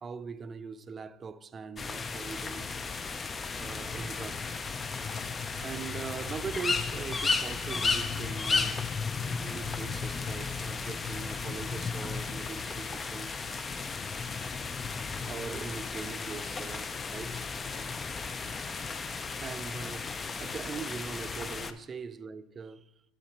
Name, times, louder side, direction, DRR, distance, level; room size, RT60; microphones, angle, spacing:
voice 1, 0.0-2.7 3.5-4.4 5.6-8.8 9.3-13.7 15.2-17.5 19.4-22.9, right 5 dB, 30° right, 0.4 m, -41 dB
sound 1, 1.8-21.7, left 4 dB, 25° left, 0.5 m, -34 dB
8.4 x 5.6 x 4.4 m
hypercardioid pair, 80°, 0 cm